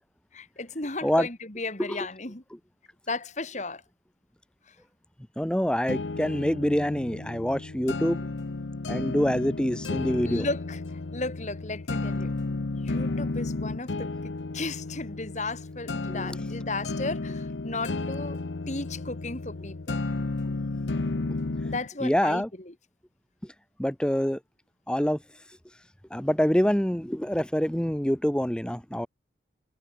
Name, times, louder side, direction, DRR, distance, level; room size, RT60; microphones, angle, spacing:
voice 1, 0.3-2.4 3.1-3.8 4.7-4.8 10.3-10.8 11.1-12.3 12.8-18.4 18.7-20.0 21.6-22.7, left 2 dB, 40° left, 2.7 m, -35 dB
voice 2, 5.4-8.2 8.9-10.5 16.1-16.4 22.0-22.5 23.8-24.4 24.9-25.2 26.1-29.1, equal, 5° left, 0.8 m, -26 dB
sound 1, 5.9-21.9, left 3 dB, 85° left, 0.8 m, -33 dB
head